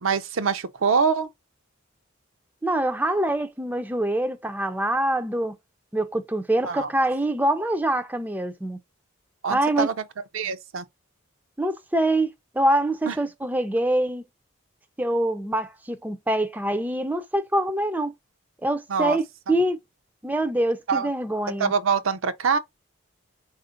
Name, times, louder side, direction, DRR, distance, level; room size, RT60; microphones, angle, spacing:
voice 1, 0.0-1.3 6.6-6.9 9.4-9.9 10.3-10.9 13.1-13.2 18.9-19.2 20.9-21.1 21.6-22.6, right 5 dB, 70° right, 0.6 m, -24 dB
voice 2, 2.6-5.6 5.9-8.8 9.5-9.9 11.6-14.2 15.0-18.1 18.6-19.8 20.2-21.7, right 1 dB, 10° right, 0.4 m, -25 dB
4.2 x 2.5 x 3.8 m
head